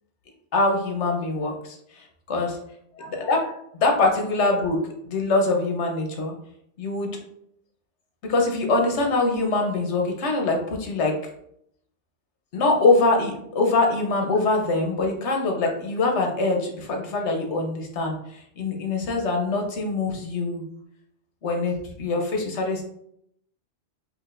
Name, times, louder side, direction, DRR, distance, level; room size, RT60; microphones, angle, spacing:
voice 1, 0.5-2.6 3.0-3.5 3.8-4.8 5.0-6.3 6.8-7.1 8.2-11.1 12.5-20.6 21.4-22.8, left 3 dB, 80° left, 2 dB, 1.1 m, -23 dB
4.8 x 2.8 x 2.5 m, 0.72 s
omnidirectional pair, 1.2 m